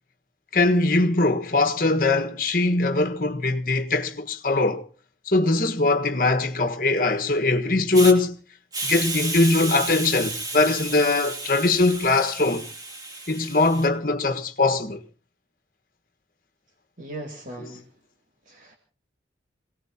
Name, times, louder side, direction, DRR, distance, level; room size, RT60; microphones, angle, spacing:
voice 1, 0.5-4.8 5.3-8.4 8.8-12.7 13.3-15.0, left 2 dB, 50° left, 1.5 m, -21 dB
Hiss, 7.9-8.1 8.7-13.9, right 2 dB, 20° right, 2.5 m, -32 dB
voice 2, 17.0-17.9 18.5-18.8, right 1 dB, 45° right, 2.7 m, -38 dB
27.0 x 18.0 x 2.9 m
head